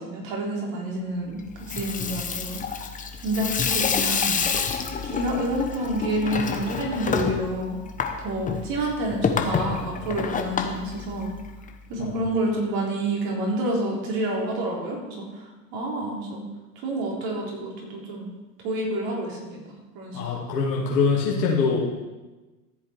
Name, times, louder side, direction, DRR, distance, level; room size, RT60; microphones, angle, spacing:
voice 1, 0.0-1.4 1.7-2.8 3.2-4.4 5.0-7.8 8.2-11.3 11.9-16.4 16.8-18.3 18.6-20.4, right 1 dB, 45° right, -2 dB, 4.0 m, -29 dB
Water tap faucet / Sink (filling or washing), 1.5-11.7, left 6 dB, 15° left, 1.0 m, -28 dB
voice 2, 20.1-21.8, left 5 dB, 85° left, -5 dB, 2.6 m, -23 dB
14.0 x 7.6 x 4.6 m, 1.2 s
hypercardioid pair, 110°, 48 cm